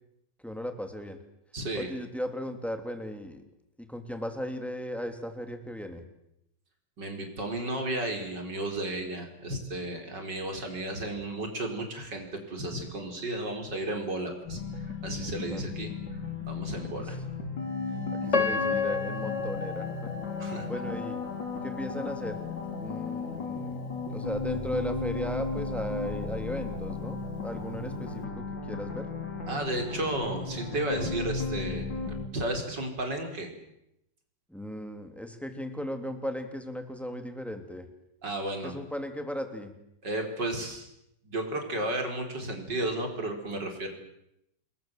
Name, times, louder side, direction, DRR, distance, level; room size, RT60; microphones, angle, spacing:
voice 1, 0.4-1.2 1.7-3.4 3.8-6.0 15.4-15.7 17.0-17.1 18.2-20.1 20.6-21.2 21.5-22.4 22.8-23.8 24.1-29.1 34.5-37.9 38.6-39.7, equal, ahead, 6 dB, 3.0 m, -36 dB
voice 2, 1.5-1.9 7.0-15.9 16.5-17.2 20.4-20.7 29.5-31.9 32.3-33.5 38.2-38.7 40.0-40.9 41.2-43.9, right 1 dB, 65° right, 3 dB, 5.3 m, -33 dB
sound 1, 14.4-32.3, left 4 dB, 75° left, 4.5 m, -35 dB
Piano, 18.3-21.3 21.9-22.0 22.7-22.9, left 5 dB, 40° left, 1.8 m, -31 dB
28.5 x 21.0 x 7.7 m, 0.82 s
omnidirectional pair, 2.0 m